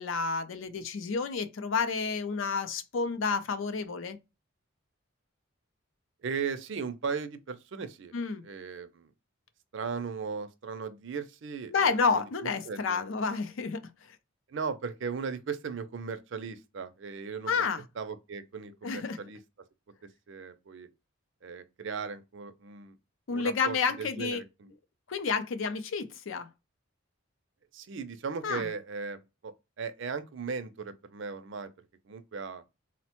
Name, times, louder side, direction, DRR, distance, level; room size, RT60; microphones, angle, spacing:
voice 1, 0.0-4.2 8.1-8.4 11.7-13.8 14.1-14.2 17.5-17.8 18.8-19.2 23.3-24.4 25.1-26.5 28.4-28.7, left 5 dB, 70° left, 0.5 m, -30 dB
voice 2, 6.2-8.1 8.4-9.1 9.7-13.0 14.5-17.6 18.0-19.4 20.0-20.9 21.4-23.0 23.3-24.7 27.7-31.7 32.1-32.6, right 5 dB, 60° right, 0.4 m, -37 dB
4.0 x 2.1 x 2.9 m
head